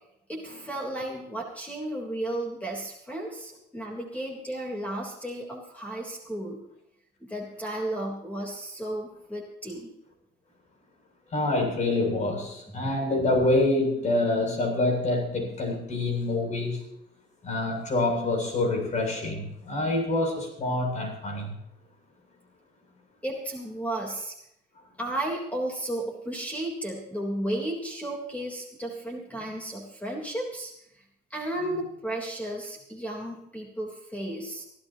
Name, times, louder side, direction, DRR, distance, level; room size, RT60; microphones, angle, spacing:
voice 1, 0.3-6.6 7.2-9.9 12.7-12.9 23.2-24.4 25.0-30.7 31.3-34.6, right 1 dB, 10° left, -1 dB, 3.7 m, -33 dB
voice 2, 11.3-16.8 17.4-21.5, left 2 dB, 45° left, 3 dB, 7.8 m, -26 dB
24.0 x 15.0 x 3.0 m, 0.78 s
cardioid pair, 110°, 17 cm